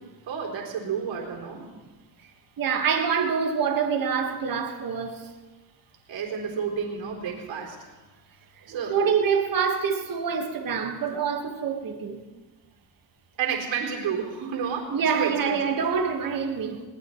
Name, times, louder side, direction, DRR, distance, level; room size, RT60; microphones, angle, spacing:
voice 1, 0.3-1.7 6.1-7.9 8.6-9.0 13.4-15.7, right 7 dB, 60° right, 3.7 m, -31 dB
voice 2, 2.6-5.3 8.9-12.2 14.9-16.8, right 6 dB, 40° right, 1.8 m, -26 dB
21.0 x 18.5 x 3.2 m
cardioid pair, 145°, 50 cm